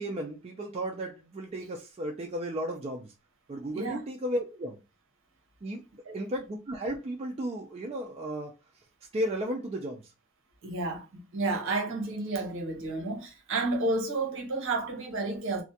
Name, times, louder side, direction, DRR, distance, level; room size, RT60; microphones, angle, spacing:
voice 1, 0.0-3.1 3.5-4.8 5.6-5.8 6.1-8.5 9.1-10.1, right 1 dB, 30° right, 0.3 m, -34 dB
voice 2, 10.6-15.6, right 2 dB, 60° right, 0.8 m, -31 dB
2.4 x 2.1 x 2.6 m
head